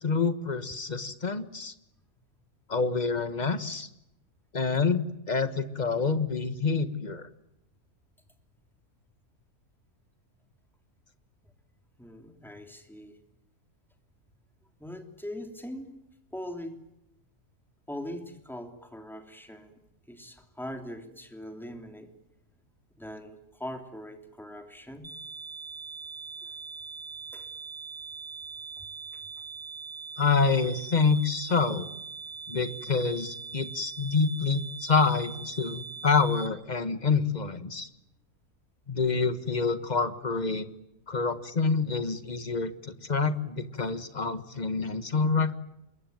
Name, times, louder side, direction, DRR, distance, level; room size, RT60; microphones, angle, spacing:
voice 1, 0.0-1.7 2.7-3.9 4.5-7.3 30.2-31.9 32.5-37.9 38.9-40.7 41.1-45.6, left 4 dB, 30° left, 11 dB, 1.4 m, -27 dB
voice 2, 12.0-13.2 14.8-15.9 16.3-16.8 17.9-19.8 20.1-22.1 23.0-25.1 26.4-26.5 27.3-27.5 28.8-28.9 29.1-29.2, left 1 dB, ahead, 5 dB, 3.1 m, -41 dB
sound 1, 25.0-36.5, right 5 dB, 25° right, 1.9 m, -41 dB
26.5 x 22.5 x 9.3 m, 0.84 s
omnidirectional pair, 1.7 m